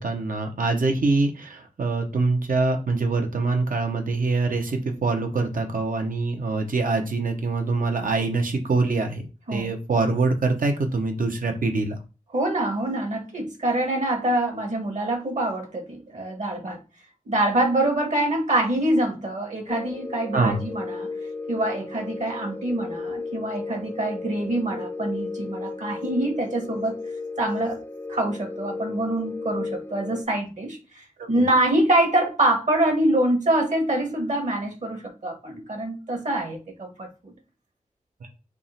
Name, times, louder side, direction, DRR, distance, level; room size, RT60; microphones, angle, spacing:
voice 1, 0.0-12.0 20.3-20.6 31.2-31.4, right 3 dB, 85° right, 4 dB, 0.9 m, -24 dB
voice 2, 12.3-16.8 17.2-21.1 21.5-27.0 27.4-27.8 28.1-37.3, right 1 dB, 65° right, 3 dB, 1.2 m, -25 dB
sound 1, 19.7-30.2, left 3 dB, 15° left, 0.4 m, -34 dB
3.6 x 3.1 x 4.2 m, 0.31 s
wide cardioid pair, 100°, 14 cm